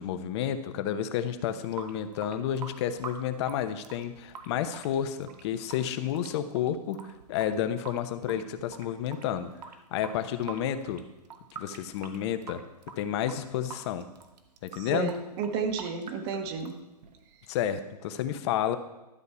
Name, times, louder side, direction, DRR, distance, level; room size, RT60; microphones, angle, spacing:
voice 1, 0.0-11.0 11.5-12.6 13.0-14.1 14.6-15.1 17.5-18.8, left 10 dB, 40° left, 10 dB, 1.0 m, -31 dB
Water tap faucet / Sink (filling or washing) / Drip, 1.5-17.4, right 6 dB, 80° right, 1.4 m, -46 dB
voice 2, 14.8-16.8, right 5 dB, 35° right, 6 dB, 1.3 m, -32 dB
12.5 x 5.3 x 8.3 m, 1.0 s
hypercardioid pair, 150°, 21 cm